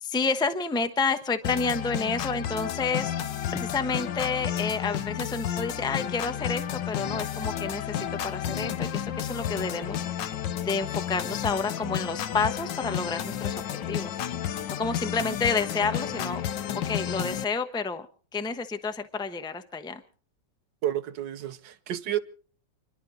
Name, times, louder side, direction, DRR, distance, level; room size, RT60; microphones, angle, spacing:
voice 1, 0.0-10.0 10.6-13.6 13.9-14.2 14.8-16.4 16.7-18.1 18.3-20.0, left 4 dB, 5° left, 0.8 m, -30 dB
sound 1, 1.4-17.4, left 10 dB, 80° left, 1.6 m, -32 dB
voice 2, 20.8-22.2, right 12 dB, 75° right, 1.6 m, -30 dB
29.5 x 11.5 x 3.8 m
omnidirectional pair, 1.9 m